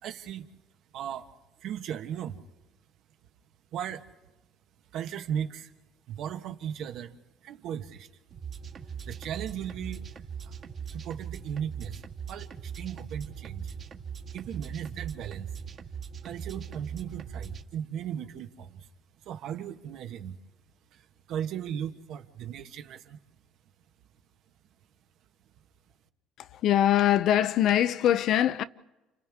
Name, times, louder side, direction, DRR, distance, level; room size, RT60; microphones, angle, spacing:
voice 1, 0.0-0.5 0.9-1.3 1.6-2.4 3.7-4.0 4.9-5.7 6.1-7.1 7.4-8.1 8.8-10.6 10.9-13.8 14.3-15.5 16.2-18.9 19.2-20.4 20.9-23.2, right 9 dB, 60° right, 1.4 m, -37 dB
sound 1, 8.3-17.6, right 7 dB, 40° right, 1.8 m, -40 dB
voice 2, 26.4-28.6, left 11 dB, 55° left, 0.7 m, -23 dB
30.0 x 29.5 x 3.6 m
cardioid pair, 140°, 0 cm